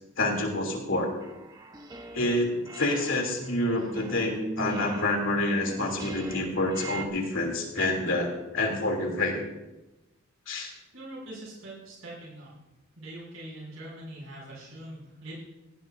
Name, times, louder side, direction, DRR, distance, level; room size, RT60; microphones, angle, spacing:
voice 1, 0.2-1.1 2.1-9.4 10.5-10.7, left 2 dB, 65° left, 1 dB, 3.0 m, -28 dB
sound 1, 1.2-2.4 2.7-7.1, right 2 dB, 20° right, 1.2 m, -40 dB
voice 2, 10.9-12.5 13.0-15.3, right 1 dB, 70° right, -4 dB, 6.5 m, -43 dB
18.5 x 17.0 x 2.7 m, 1.0 s
head